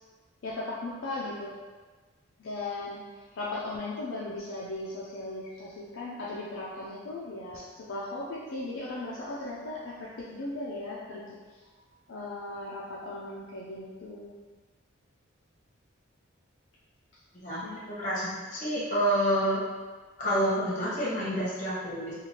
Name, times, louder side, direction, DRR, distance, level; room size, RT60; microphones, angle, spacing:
voice 1, 0.4-1.5 2.4-11.7 12.1-14.3 17.6-17.8, left 2 dB, 60° left, -6 dB, 0.4 m, -37 dB
voice 2, 17.3-19.6 20.2-22.1, equal, 40° left, -8 dB, 1.0 m, -28 dB
3.0 x 2.4 x 2.8 m, 1.4 s
head